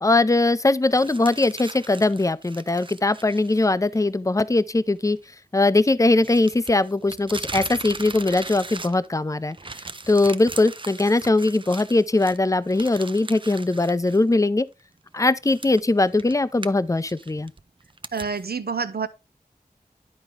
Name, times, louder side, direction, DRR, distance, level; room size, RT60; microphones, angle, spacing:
voice 1, 0.0-5.2 5.5-9.6 10.1-14.7 15.1-17.5, left 2 dB, 20° left, 0.5 m, -21 dB
sound 1, 0.9-3.6 3.9-4.0 6.2-9.2 9.5-14.2 14.6-14.7 15.4-18.4, right 3 dB, 30° right, 0.5 m, -39 dB
voice 2, 18.1-19.1, right 5 dB, 90° right, 0.6 m, -27 dB
10.5 x 4.5 x 3.6 m
wide cardioid pair, 40°, 16 cm